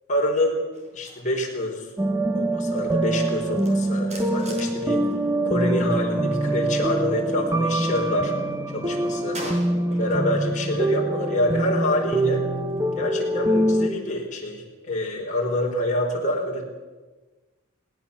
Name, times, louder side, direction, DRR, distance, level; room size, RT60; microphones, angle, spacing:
voice 1, 0.1-0.6 0.9-1.9 2.3-5.1 5.4-8.3 8.7-9.4 9.9-12.4 13.0-16.7, left 1 dB, 40° left, -1 dB, 4.7 m, -26 dB
sound 1, 0.7-6.1 6.3-8.0 8.3-10.4 10.8-13.5, right 1 dB, 35° right, 5.4 m, -45 dB
sound 2, 2.0-13.9, right 1 dB, 15° right, 1.1 m, -24 dB
20.0 x 18.0 x 7.3 m, 1.3 s
head